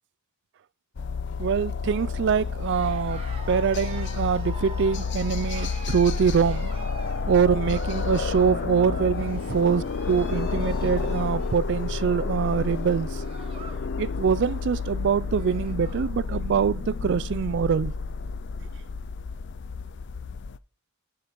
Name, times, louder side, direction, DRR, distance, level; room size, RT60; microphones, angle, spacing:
sound 1, 1.0-20.6, left 4 dB, 55° left, 0.5 m, -30 dB
voice 1, 1.4-6.7 7.3-9.8 10.1-13.2 14.0-17.9, right 6 dB, 55° right, 0.3 m, -24 dB
Cheering, 2.6-13.9 14.2-14.6 15.0-15.1 15.3-16.1, right 3 dB, 25° right, 1.5 m, -45 dB
11.0 x 4.5 x 5.2 m
head